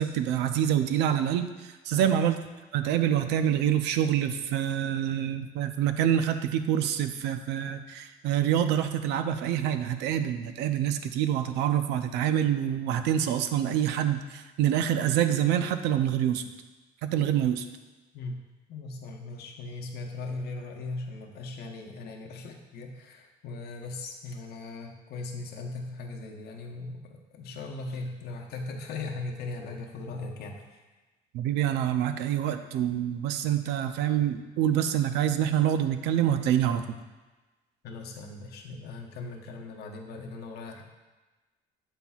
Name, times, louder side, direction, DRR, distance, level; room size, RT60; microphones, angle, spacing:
voice 1, 0.0-2.4 2.7-16.4 17.0-17.7 31.3-36.9, right 10 dB, 90° right, 9 dB, 0.4 m, -26 dB
voice 2, 18.7-30.8 37.8-40.8, left 3 dB, 70° left, 2 dB, 0.9 m, -39 dB
7.2 x 5.6 x 2.3 m, 1.2 s
cardioid pair, 110°, 17 cm